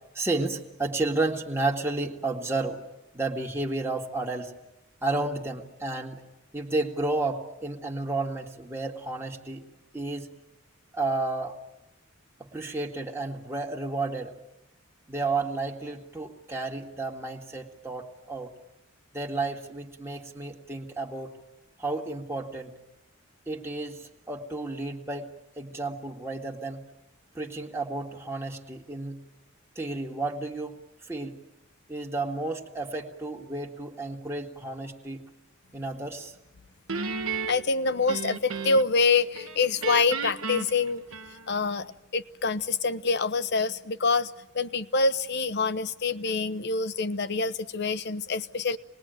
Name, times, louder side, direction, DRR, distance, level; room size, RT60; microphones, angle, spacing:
voice 1, 0.2-2.8 3.1-4.5 5.0-6.2 6.5-9.7 9.9-10.3 10.9-11.6 12.4-14.3 15.1-18.5 19.1-21.3 21.8-22.7 23.5-25.3 25.6-26.8 27.3-29.2 29.8-30.8 31.1-31.4 31.9-35.2 35.7-36.3, right 2 dB, 15° right, 0 dB, 1.9 m, -32 dB
Guitar, 36.9-39.0 39.3-41.7, right 4 dB, 90° right, 1.3 m, -34 dB
voice 2, 37.5-41.0 41.5-48.8, left 4 dB, 55° left, 13 dB, 0.9 m, -26 dB
26.5 x 20.5 x 9.2 m, 0.95 s
head